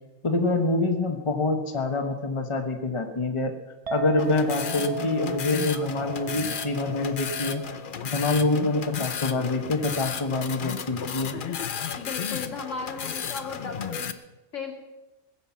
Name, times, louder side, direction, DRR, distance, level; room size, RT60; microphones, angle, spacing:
voice 1, 0.2-3.5 3.9-7.6 8.0-11.4, left 2 dB, 25° left, 4 dB, 1.2 m, -26 dB
Chink clink, 3.9-10.2, right 6 dB, 30° right, 0.9 m, -40 dB
sound 1, 4.2-14.1, left 8 dB, 50° left, 0.8 m, -33 dB
voice 2, 12.0-14.1 14.5-14.7, left 4 dB, 70° left, 1 dB, 2.6 m, -35 dB
20.0 x 7.5 x 7.3 m, 1.1 s
omnidirectional pair, 1.3 m